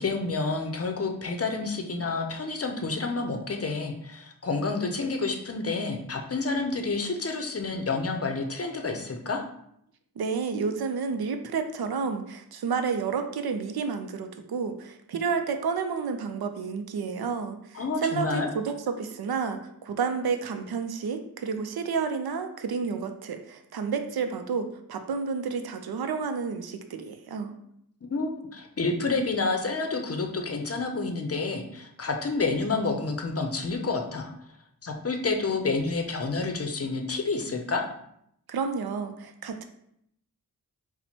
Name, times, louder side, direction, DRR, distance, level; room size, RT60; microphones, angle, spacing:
voice 1, 0.0-9.4 17.7-18.5 28.0-34.3 34.8-37.8, left 3 dB, 40° left, 4 dB, 0.6 m, -29 dB
voice 2, 10.2-27.6 38.5-39.6, right 5 dB, 85° right, 7 dB, 0.5 m, -30 dB
4.2 x 2.1 x 4.3 m, 0.73 s
wide cardioid pair, 90°, 36 cm